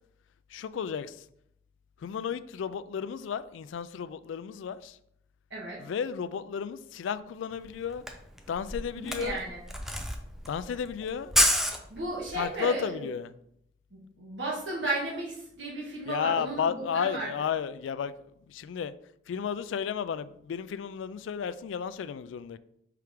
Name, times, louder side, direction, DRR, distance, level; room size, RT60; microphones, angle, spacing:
voice 1, 0.5-1.2 2.0-5.0 5.8-8.0 8.5-9.4 10.4-11.3 12.3-13.3 16.1-18.1 18.5-18.9 19.3-22.6, left 7 dB, 80° left, 0.3 m, -33 dB
Camera, 7.6-7.7 7.9-12.4, equal, ahead, 0.5 m, -29 dB
voice 2, 9.2-9.6 11.9-13.0 13.9-17.3, right 2 dB, 75° right, 1.5 m, -34 dB
5.8 x 4.7 x 3.5 m
head